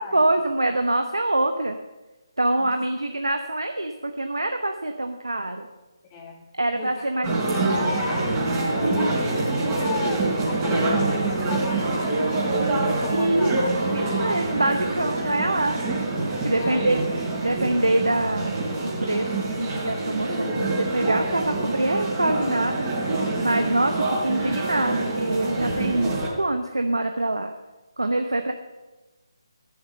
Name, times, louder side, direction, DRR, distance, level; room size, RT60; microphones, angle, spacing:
voice 1, 0.0-1.8 2.4-5.7 6.6-7.8 13.1-13.5 13.8-15.8 16.4-19.3 19.6-22.9 23.4-27.5 28.0-28.5, right 2 dB, 80° right, 6 dB, 1.0 m, -25 dB
voice 2, 6.1-6.4 6.7-8.6 8.9-13.7 16.6-16.8 23.7-24.1, left 4 dB, 20° left, 1 dB, 1.7 m, -37 dB
sound 1, 7.2-26.3, right 2 dB, 20° right, 4.0 m, -26 dB
14.0 x 7.1 x 6.8 m, 1.1 s
figure-of-eight pair, 150°, 2 cm